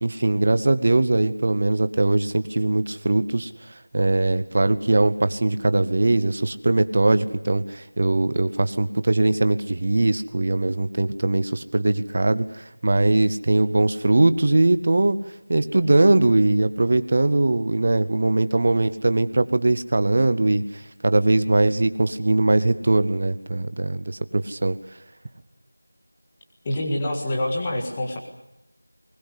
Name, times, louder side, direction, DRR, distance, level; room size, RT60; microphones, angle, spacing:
voice 1, 0.0-3.5 3.9-15.2 15.5-20.6 21.0-24.8, right 2 dB, 25° right, 12 dB, 0.8 m, -21 dB
voice 2, 26.6-28.2, left 1 dB, 10° left, 0 dB, 1.7 m, -26 dB
21.5 x 20.5 x 8.3 m, 0.87 s
figure-of-eight pair, 180°, 0 cm